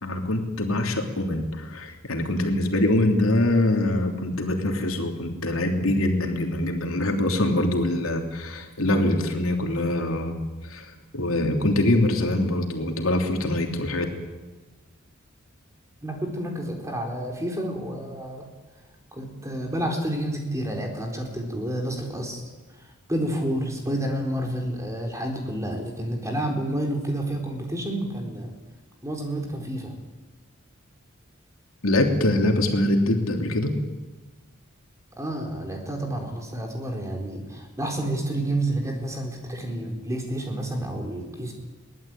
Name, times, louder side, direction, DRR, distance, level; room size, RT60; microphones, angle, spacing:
voice 1, 0.0-10.4 10.6-14.0 31.8-33.7, left 1 dB, 80° left, 3 dB, 3.2 m, -24 dB
voice 2, 16.0-18.5 19.1-22.4 22.7-28.5 29.0-29.9 35.2-41.5, right 1 dB, 15° right, 2 dB, 4.2 m, -29 dB
22.5 x 19.0 x 9.1 m, 1.2 s
head